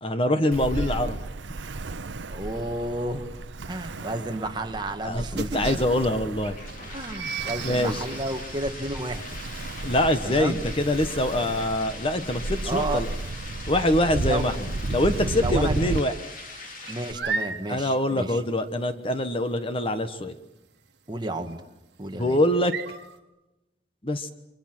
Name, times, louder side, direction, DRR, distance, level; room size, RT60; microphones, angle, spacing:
voice 1, 0.0-1.2 5.0-6.6 7.6-8.0 9.8-13.1 13.7-16.1 17.7-20.3 22.2-22.7 24.0-24.3, left 1 dB, 30° left, 9 dB, 1.2 m, -24 dB
Ocean, 0.5-16.0, right 2 dB, 85° right, 0.8 m, -34 dB
voice 2, 2.3-3.3 3.7-5.6 6.9-9.4 10.2-10.6 12.6-13.0 14.3-14.5 15.4-15.7 16.9-18.4 21.1-21.6 22.0-22.4, right 2 dB, 25° right, 5 dB, 1.8 m, -31 dB
sound 1, 5.4-14.8 15.1-15.5 15.8-23.2, right 5 dB, 65° right, 1.8 m, -38 dB
sound 2, 6.1-17.1, left 3 dB, 45° left, 3.5 m, -42 dB
29.5 x 24.5 x 6.2 m, 0.94 s
head